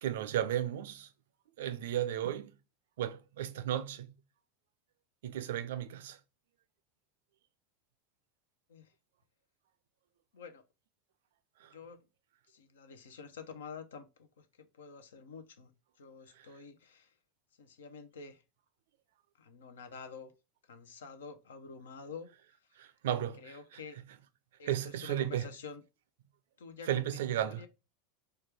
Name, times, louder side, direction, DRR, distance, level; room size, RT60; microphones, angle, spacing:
voice 1, 0.0-1.1 1.6-2.5 3.0-4.1 5.2-6.2 11.6-11.7 16.4-16.5 22.8-23.8 24.6-25.5 26.9-27.6, right 11 dB, 70° right, 0.4 m, -34 dB
voice 2, 12.5-14.1 14.4-14.5 14.7-15.7 16.0-17.1 17.6-18.4 19.4-20.3 20.7-22.3 23.4-24.0 24.6-25.8 26.6-27.0 27.4-27.7, left 5 dB, 75° left, 0.6 m, -48 dB
4.3 x 2.3 x 3.3 m
hypercardioid pair, 85°, 0 cm